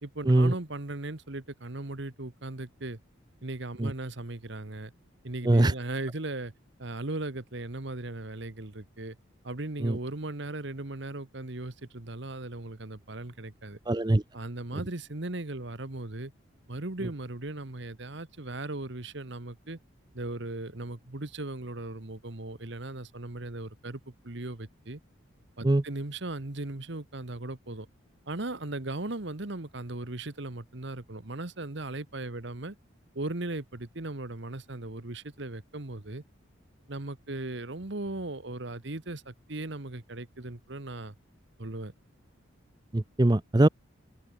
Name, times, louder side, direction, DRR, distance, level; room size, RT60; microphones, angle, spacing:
voice 1, 0.0-3.0 3.4-4.9 5.2-6.5 6.8-9.2 9.4-13.8 14.3-16.3 16.7-19.8 20.1-25.0 25.6-27.9 28.3-32.7 33.1-36.2 36.9-41.1 41.6-41.9, right 2 dB, 60° right, 1.4 m, -37 dB
voice 2, 13.9-14.2 25.6-25.8 42.9-43.7, right 1 dB, 20° right, 0.5 m, -22 dB
open air
head